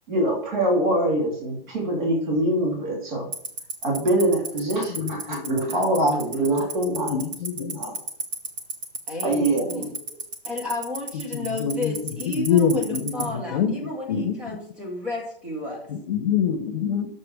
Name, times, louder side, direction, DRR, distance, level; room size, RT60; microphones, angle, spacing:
voice 1, 0.1-3.3 3.8-7.2 7.6-7.9 9.2-9.9, right 1 dB, 55° right, -1 dB, 2.8 m, -24 dB
Tick-tock, 3.3-13.2, right 4 dB, 35° right, 1.1 m, -29 dB
voice 2, 4.9-5.6 6.9-7.9 11.3-11.9 12.2-14.6 15.9-17.2, left 7 dB, 45° left, 9 dB, 0.8 m, -26 dB
voice 3, 9.1-9.9 10.4-15.9, left 2 dB, 5° right, 1 dB, 0.4 m, -32 dB
6.7 x 5.3 x 6.2 m, 0.62 s
hypercardioid pair, 165°, 29 cm